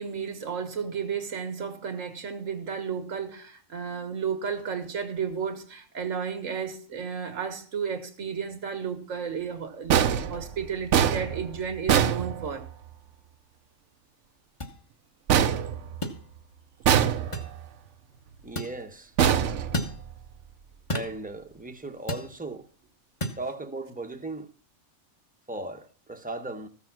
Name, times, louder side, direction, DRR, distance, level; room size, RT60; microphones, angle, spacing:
voice 1, 0.0-12.6, right 6 dB, 90° right, 1.9 m, -33 dB
sound 1, 9.9-12.9 15.3-16.4 16.8-17.7 19.2-20.3, right 9 dB, 70° right, 1.0 m, -24 dB
sound 2, 14.6-14.8 16.0-16.2 17.3-17.5 18.6-18.8 19.7-20.0 20.9-21.2 22.1-22.3 23.2-23.4, equal, 25° left, 1.3 m, -31 dB
voice 2, 18.4-19.1 20.9-22.7 23.4-24.5 25.5-26.7, right 2 dB, 10° right, 0.9 m, -37 dB
14.5 x 6.8 x 5.9 m
omnidirectional pair, 1.3 m